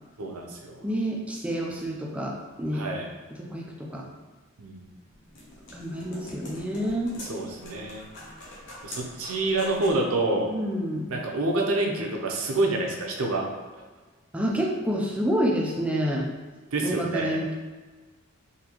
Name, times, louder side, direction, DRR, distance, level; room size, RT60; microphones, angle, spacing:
voice 1, 0.2-0.8 2.7-3.1 4.6-4.9 7.3-8.0 8.8-10.5 11.1-13.5 16.7-17.4, right 2 dB, 80° right, 1 dB, 0.6 m, -27 dB
voice 2, 0.8-2.9 3.3-4.1 5.7-7.2 10.5-11.1 14.3-16.3 16.8-17.5, equal, 5° right, -1 dB, 0.3 m, -28 dB
sound 1, 4.8-10.1, left 1 dB, 55° left, 0.9 m, -44 dB
3.9 x 2.7 x 2.9 m, 1.3 s
head